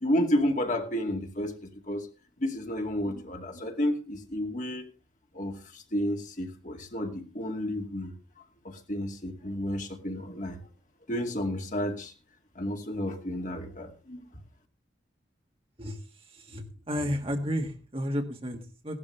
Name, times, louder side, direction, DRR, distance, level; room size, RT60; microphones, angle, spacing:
voice 1, 0.0-2.1 2.4-4.9 5.3-8.1 8.6-10.6 11.1-12.1 12.6-14.2, left 1 dB, 45° left, 3 dB, 2.3 m, -31 dB
voice 2, 16.5-19.0, equal, 30° right, 4 dB, 1.7 m, -32 dB
17.0 x 12.5 x 3.3 m, 0.32 s
head